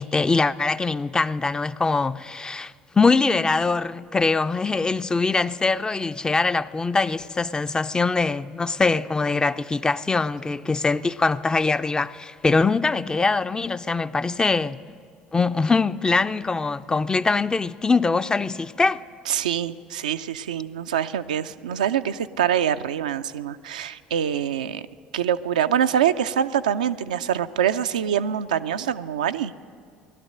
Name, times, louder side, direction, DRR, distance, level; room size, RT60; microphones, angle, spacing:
voice 1, 0.0-14.8 15.3-19.0, left 4 dB, 20° left, 0.4 m, -23 dB
voice 2, 19.3-24.8 25.1-29.5, right 9 dB, 80° right, 0.3 m, -25 dB
18.0 x 12.0 x 6.6 m
figure-of-eight pair, 60°, 4 cm